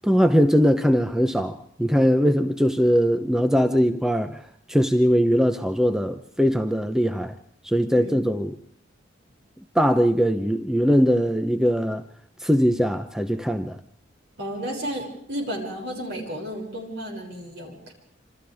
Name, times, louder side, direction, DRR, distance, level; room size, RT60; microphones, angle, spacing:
voice 1, 0.0-4.4 4.7-7.4 7.6-8.6 9.8-12.0 12.4-13.8, equal, 5° right, 0.8 m, -21 dB
voice 2, 14.4-17.9, equal, 65° right, 6.6 m, -32 dB
27.5 x 26.5 x 3.5 m
head